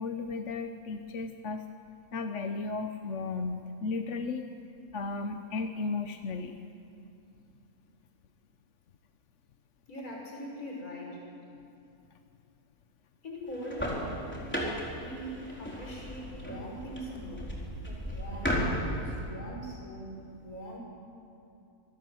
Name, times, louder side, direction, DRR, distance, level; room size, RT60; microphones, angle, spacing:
voice 1, 0.0-1.7 2.1-4.5 4.9-6.6, left 4 dB, 55° left, 7 dB, 1.2 m, -34 dB
voice 2, 9.9-11.2 13.2-14.2 15.0-17.5 17.8-20.8, equal, 70° left, -2 dB, 6.3 m, -42 dB
sound 1, 13.5-19.2, equal, 5° left, 4.2 m, -35 dB
26.0 x 19.0 x 7.8 m, 2.7 s
omnidirectional pair, 1.6 m